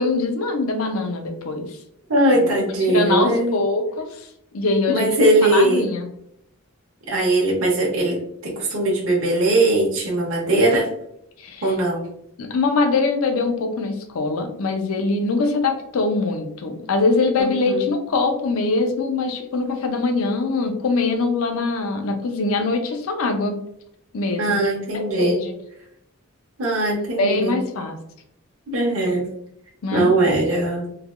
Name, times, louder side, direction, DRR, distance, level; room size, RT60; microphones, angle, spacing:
voice 1, 0.0-1.8 2.9-4.3 4.5-5.2 5.4-6.1 11.4-11.7 12.4-23.6 24.1-24.6 24.9-25.5 27.2-28.0 29.8-30.1, left 3 dB, 75° left, 5 dB, 0.5 m, -23 dB
voice 2, 2.1-3.6 4.9-5.9 7.1-10.9 11.6-12.1 17.4-17.9 24.4-25.4 26.6-27.6 28.7-29.3 29.9-30.9, right 1 dB, 65° right, -3 dB, 0.7 m, -20 dB
3.2 x 2.2 x 2.3 m, 0.74 s
head